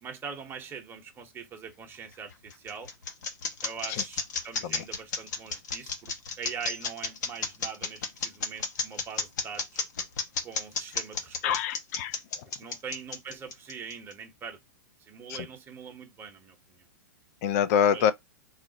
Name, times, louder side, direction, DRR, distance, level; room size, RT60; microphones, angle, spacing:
voice 1, 0.0-2.9 3.6-9.8 10.4-11.6 12.6-14.6 15.0-16.9 17.9-18.1, right 6 dB, 20° right, 0.8 m, -42 dB
sound 1, 2.1-14.1, left 4 dB, 70° left, 0.8 m, -32 dB
voice 2, 11.4-12.2 15.3-15.4 17.4-18.1, left 8 dB, 50° left, 0.4 m, -25 dB
2.4 x 2.0 x 3.8 m
hypercardioid pair, 120°, 10 cm